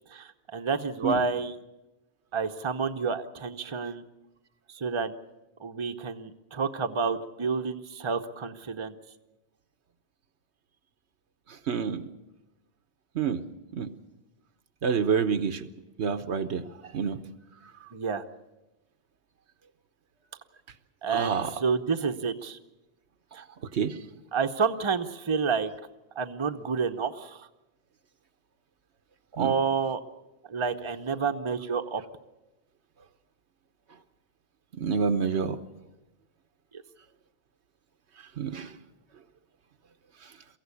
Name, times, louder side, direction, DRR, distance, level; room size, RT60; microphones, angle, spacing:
voice 1, 0.1-1.5 2.3-4.0 4.7-5.1 5.6-8.9 17.9-18.2 21.0-22.6 23.3-23.4 24.3-25.7 26.2-27.5 29.3-30.0 30.5-32.0 36.7-36.8, right 5 dB, 30° right, 7 dB, 0.8 m, -29 dB
voice 2, 11.7-12.1 13.1-13.4 13.7-13.9 14.8-15.7 16.0-16.6 16.9-17.2 21.1-21.5 23.7-23.9 29.4-29.5 34.7-35.6 38.4-38.7, right 6 dB, 85° right, 10 dB, 1.3 m, -27 dB
23.5 x 15.5 x 8.3 m, 1.0 s
omnidirectional pair, 1.1 m